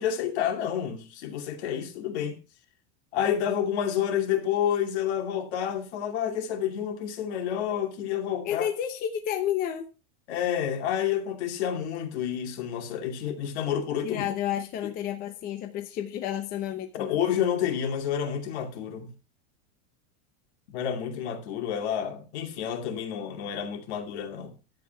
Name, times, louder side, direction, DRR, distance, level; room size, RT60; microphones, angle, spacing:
voice 1, 0.0-2.4 3.1-8.7 10.3-14.2 14.8-14.9 16.9-19.1 20.7-24.6, left 9 dB, 65° left, 2.7 m, -29 dB
voice 2, 8.4-9.9 14.0-17.2, left 10 dB, 25° left, 0.8 m, -31 dB
12.0 x 8.4 x 4.5 m
supercardioid pair, 175°, 36 cm